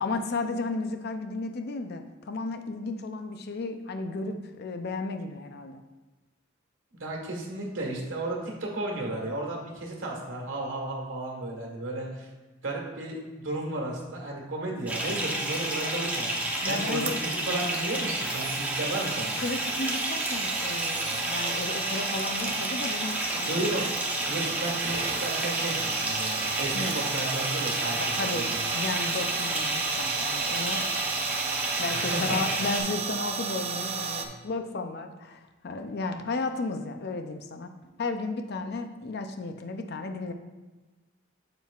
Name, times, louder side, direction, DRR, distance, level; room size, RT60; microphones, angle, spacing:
voice 1, 0.0-5.8 16.6-17.2 19.4-23.6 26.7-27.1 28.0-31.2 31.5-37.7 38.0-40.3, left 3 dB, 55° left, 7 dB, 0.5 m, -34 dB
voice 2, 6.9-12.3 12.6-16.4 16.6-19.4 23.5-28.6 31.9-32.4, right 2 dB, 75° right, -1 dB, 1.5 m, -33 dB
Bathtub (filling or washing) / Fill (with liquid), 14.9-32.8, right 1 dB, 10° right, 0.9 m, -31 dB
sound 1, 15.6-34.3, right 6 dB, 35° right, 0.5 m, -34 dB
7.6 x 7.1 x 2.4 m, 1.2 s
head